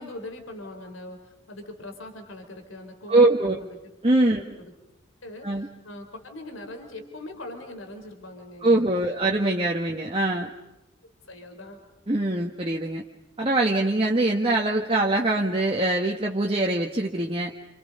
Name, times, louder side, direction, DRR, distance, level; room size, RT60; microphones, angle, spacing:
voice 1, 0.0-3.8 4.3-4.7 5.2-9.3 11.0-11.8, left 1 dB, 85° left, 5 dB, 4.2 m, -41 dB
voice 2, 3.1-3.6 4.0-4.4 5.4-5.7 8.6-10.5 12.1-13.0 13.4-17.5, right 2 dB, 30° right, 0 dB, 1.5 m, -23 dB
30.0 x 27.5 x 5.4 m, 0.97 s
head